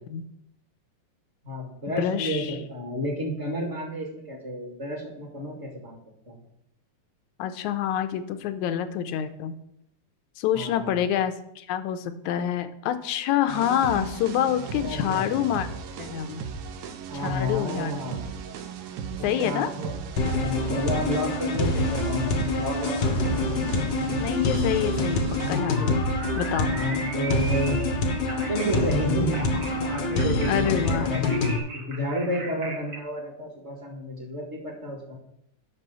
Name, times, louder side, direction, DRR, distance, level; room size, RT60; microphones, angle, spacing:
voice 1, 1.4-6.0 6.3-6.4 10.5-11.0 14.8-15.3 17.1-18.4 19.2-19.9 20.3-23.3 26.7-27.8 28.4-29.5 29.9-35.2, equal, 30° right, -1 dB, 1.6 m, -31 dB
voice 2, 2.0-2.6 7.4-9.6 10.4-15.7 16.0-16.4 17.1-17.9 19.2-19.7 24.2-26.0 26.4-26.7 30.5-31.1, left 10 dB, 90° left, 9 dB, 2.1 m, -27 dB
sound 1, 13.5-25.6, right 6 dB, 90° right, 2.3 m, -36 dB
sound 2, 20.2-31.6, left 2 dB, 70° left, 1.0 m, -26 dB
sound 3, 25.4-33.0, right 3 dB, 60° right, 0.8 m, -38 dB
6.7 x 6.1 x 7.5 m, 0.78 s
omnidirectional pair, 3.4 m